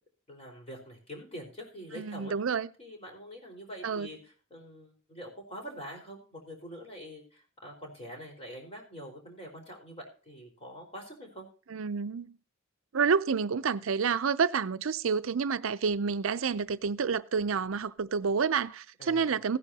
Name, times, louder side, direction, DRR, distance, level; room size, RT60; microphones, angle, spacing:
voice 1, 0.3-2.3 2.8-11.5 19.0-19.4, equal, 30° left, 4.6 m, -45 dB
voice 2, 1.9-2.7 3.8-4.1 11.7-12.4 12.9-19.6, right 5 dB, 80° right, 0.5 m, -29 dB
16.5 x 10.0 x 2.8 m
head